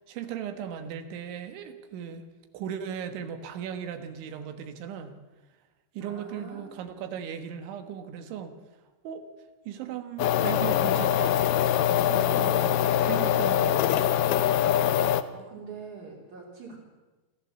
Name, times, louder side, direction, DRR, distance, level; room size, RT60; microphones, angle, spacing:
voice 1, 0.0-2.3 2.5-5.2 6.0-8.5 9.0-9.2 9.7-11.4 12.1-12.7 13.0-14.2, right 8 dB, 75° right, 8 dB, 3.7 m, -37 dB
voice 2, 6.0-6.7 12.6-13.2 14.9-16.8, right 5 dB, 40° right, -5 dB, 4.0 m, -44 dB
sound 1, 10.2-15.2, left 11 dB, 80° left, 2.2 m, -23 dB
26.0 x 15.0 x 7.5 m, 1.2 s
omnidirectional pair, 5.6 m